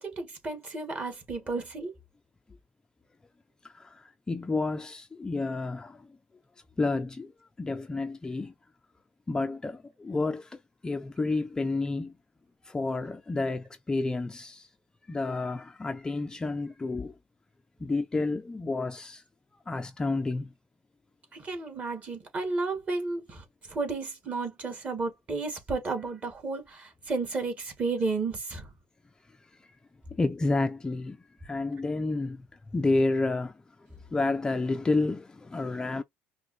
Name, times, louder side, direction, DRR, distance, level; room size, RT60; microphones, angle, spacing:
voice 1, 0.0-1.9 21.3-28.7, right 3 dB, 30° right, 1.9 m, -33 dB
voice 2, 3.6-6.2 6.8-7.3 7.6-8.5 9.3-12.2 12.6-14.7 15.1-17.1 17.8-19.2 19.7-20.5 30.1-31.2 31.4-32.5 32.7-33.6 34.1-36.0, left 3 dB, 15° left, 0.4 m, -30 dB
5.2 x 2.2 x 3.1 m
cardioid pair, 110°, 4 cm